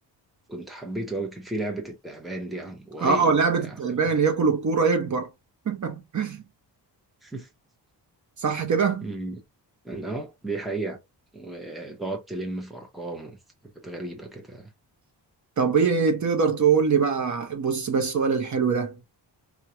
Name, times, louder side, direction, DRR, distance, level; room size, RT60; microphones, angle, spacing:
voice 1, 0.5-3.8 7.2-7.5 9.0-9.4 9.8-11.0 11.3-13.4 13.8-14.7, right 2 dB, ahead, 0.8 m, -34 dB
voice 2, 3.0-5.3 5.7-6.4 8.4-9.1 15.6-18.9, right 5 dB, 45° right, 0.8 m, -23 dB
4.7 x 2.3 x 2.7 m
wide cardioid pair, 165°, 42 cm